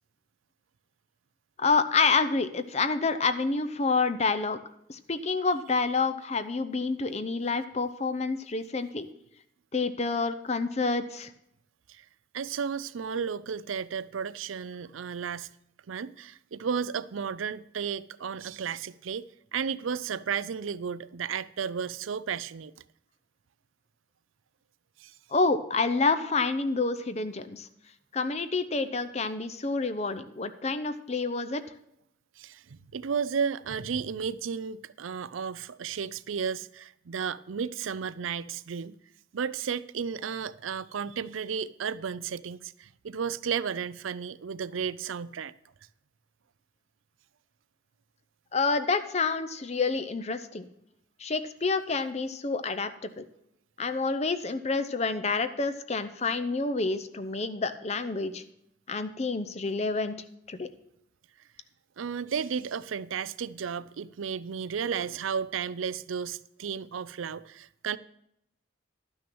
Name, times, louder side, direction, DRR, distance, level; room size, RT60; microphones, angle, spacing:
voice 1, 1.6-4.6 4.9-9.1 9.7-11.3 25.3-27.7 28.1-31.6 48.5-50.6 51.2-53.2 53.8-58.4 58.9-60.2 60.5-60.7, left 4 dB, 35° left, 0.6 m, -28 dB
voice 2, 12.3-15.5 15.9-19.3 19.5-22.7 25.0-25.1 32.4-39.0 39.3-45.5 62.0-68.0, right 6 dB, 85° right, 0.5 m, -33 dB
12.0 x 6.3 x 6.1 m
head